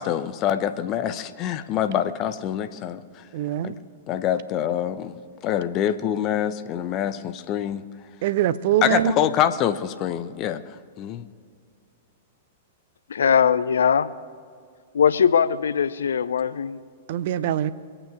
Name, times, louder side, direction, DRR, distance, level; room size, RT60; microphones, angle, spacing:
voice 1, 0.0-3.0 3.6-3.7 4.1-7.8 8.8-10.6 11.0-11.2, left 10 dB, 35° left, 0.8 m, -25 dB
voice 2, 3.3-3.7 8.2-9.1 17.1-17.7, right 12 dB, 55° right, 0.6 m, -23 dB
voice 3, 13.1-14.1 14.9-16.8, left 7 dB, 70° left, 0.5 m, -20 dB
23.0 x 8.9 x 4.9 m
figure-of-eight pair, 105°, 0 cm